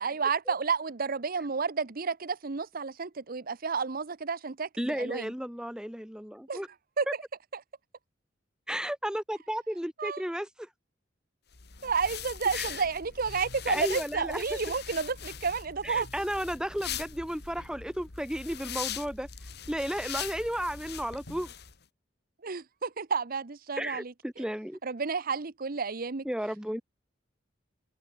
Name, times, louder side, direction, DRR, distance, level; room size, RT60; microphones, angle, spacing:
voice 1, 0.0-5.3 6.5-6.6 7.0-7.1 10.0-10.2 11.8-16.1 22.4-24.1 24.8-26.3, right 5 dB, 50° right, 0.8 m, -31 dB
voice 2, 4.8-6.7 7.1-7.2 8.7-10.7 12.5-12.7 13.7-14.4 15.8-19.3 19.7-21.5 23.8-24.8 26.2-26.8, equal, 5° right, 1.9 m, -33 dB
sound 1, 11.5-21.7, left 8 dB, 60° left, 1.8 m, -41 dB
head